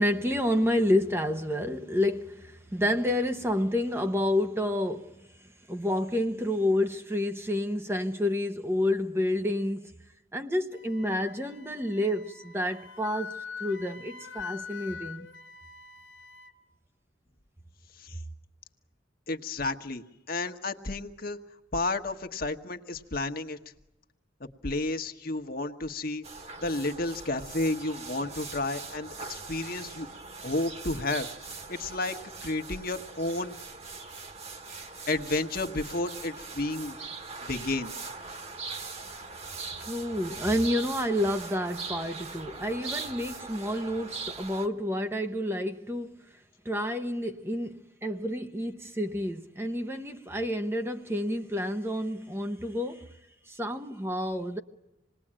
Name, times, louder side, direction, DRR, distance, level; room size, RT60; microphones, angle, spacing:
voice 1, 0.0-5.3 5.7-9.9 10.3-15.3 39.8-46.2 46.6-53.1 53.5-54.6, left 1 dB, 10° right, 0.8 m, -29 dB
Wind instrument woodwind instrument, 10.7-16.5, left 6 dB, 80° left, 1.4 m, -43 dB
voice 2, 19.3-21.4 21.7-23.6 24.4-26.2 26.6-30.1 30.4-33.5 35.1-37.0 37.4-37.9, left 2 dB, 50° left, 1.3 m, -32 dB
sound 1, 26.2-44.7, right 4 dB, 35° right, 1.5 m, -41 dB
27.0 x 20.0 x 8.8 m
head